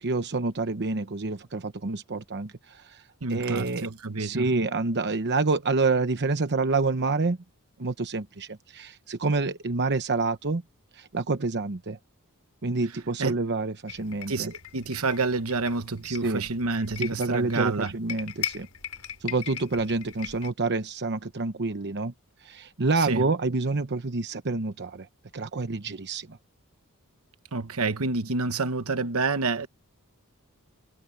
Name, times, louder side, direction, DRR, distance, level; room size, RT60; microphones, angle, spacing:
voice 1, 0.0-3.0 3.3-3.9 4.2-7.4 7.8-10.6 10.9-12.0 12.6-14.5 16.0-16.4 17.0-18.7 19.2-22.1 22.4-25.1 25.3-26.4, right 3 dB, 50° right, 1.0 m, -28 dB
voice 2, 3.2-4.5 13.2-13.4 14.3-17.9 23.0-23.3 27.5-29.7, right 3 dB, 70° right, 1.2 m, -28 dB
sound 1, 13.9-20.5, left 9 dB, 75° left, 7.0 m, -39 dB
head